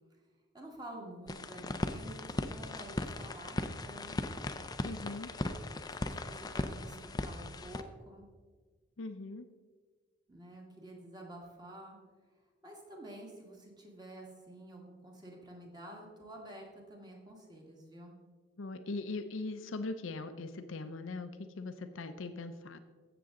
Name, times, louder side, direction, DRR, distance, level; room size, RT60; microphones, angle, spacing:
voice 1, 0.5-4.5 5.4-5.5 6.0-8.3 10.3-12.0 12.6-18.2, right 1 dB, 20° right, 0 dB, 1.9 m, -50 dB
sound 1, 1.3-7.8, left 2 dB, 20° left, 0.5 m, -38 dB
voice 2, 4.8-5.3 9.0-9.5 18.6-22.8, left 3 dB, 85° left, 8 dB, 0.6 m, -40 dB
16.0 x 6.8 x 3.8 m, 1.5 s
head